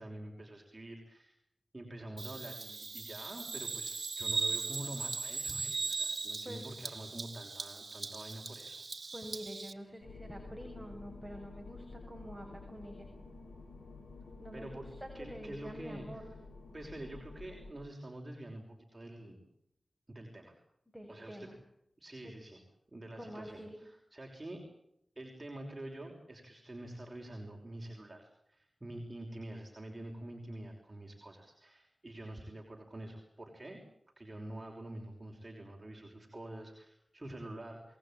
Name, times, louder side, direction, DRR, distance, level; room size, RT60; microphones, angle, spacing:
voice 1, 0.0-1.4 1.7-8.9 14.5-14.8 15.1-16.2 16.7-19.4 20.1-20.5 21.1-21.5 22.0-22.6 22.9-24.6 25.2-33.8 34.2-38.0, right 1 dB, 25° right, 0 dB, 5.9 m, -47 dB
Bird vocalization bird call bird song, 2.2-9.7, right 4 dB, 55° right, 1.9 m, -38 dB
voice 2, 9.1-13.1 14.4-16.2 20.9-21.6 22.2-22.3 23.1-23.8, equal, ahead, 1 dB, 6.7 m, -47 dB
sound 1, 10.0-17.7, left 3 dB, 75° left, 6.0 m, -51 dB
27.5 x 20.5 x 9.0 m, 0.75 s
wide cardioid pair, 65°, 0 cm